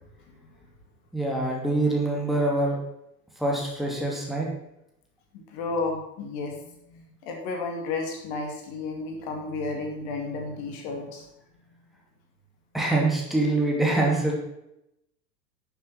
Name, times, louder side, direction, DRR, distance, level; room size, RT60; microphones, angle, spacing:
voice 1, 1.1-2.8 3.4-4.5 12.7-14.3, right 2 dB, ahead, -2 dB, 2.6 m, -24 dB
voice 2, 5.3-11.3, left 3 dB, 40° left, 2 dB, 2.3 m, -32 dB
11.5 x 7.1 x 6.0 m, 0.83 s
figure-of-eight pair, 95°, 49 cm